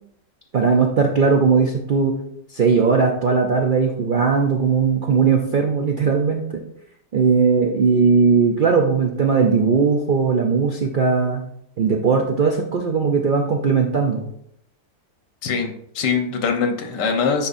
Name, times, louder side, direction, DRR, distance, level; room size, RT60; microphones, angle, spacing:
voice 1, 0.5-2.1 2.5-6.6 7.1-11.4 11.8-14.2, right 5 dB, 85° right, 2 dB, 0.4 m, -18 dB
voice 2, 15.4-17.5, left 5 dB, 85° left, 4 dB, 1.6 m, -22 dB
10.0 x 4.3 x 2.6 m, 0.72 s
omnidirectional pair, 1.8 m